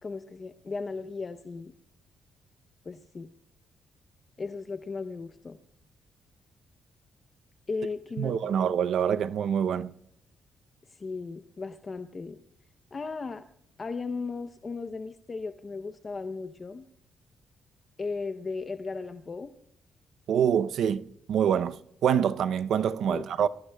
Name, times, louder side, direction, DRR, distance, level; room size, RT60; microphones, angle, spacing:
voice 1, 0.0-1.7 2.8-3.3 4.4-5.6 7.7-8.7 10.9-12.4 12.9-13.4 13.8-16.8 18.0-19.5 23.1-23.2, left 4 dB, 30° left, 0.7 m, -36 dB
voice 2, 8.2-9.9 20.3-23.5, right 8 dB, 70° right, 0.6 m, -26 dB
26.0 x 21.0 x 2.3 m
cardioid pair, 140°, 0 cm